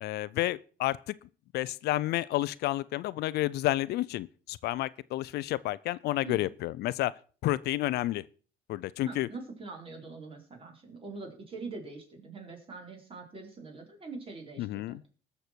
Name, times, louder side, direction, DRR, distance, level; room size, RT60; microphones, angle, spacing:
voice 1, 0.0-1.1 1.5-7.1 7.4-8.2 8.7-9.3 14.6-15.0, left 16 dB, 75° left, 0.5 m, -30 dB
voice 2, 9.0-15.0, right 3 dB, 30° right, 4.2 m, -43 dB
19.5 x 6.7 x 4.5 m
cardioid pair, 110°, 17 cm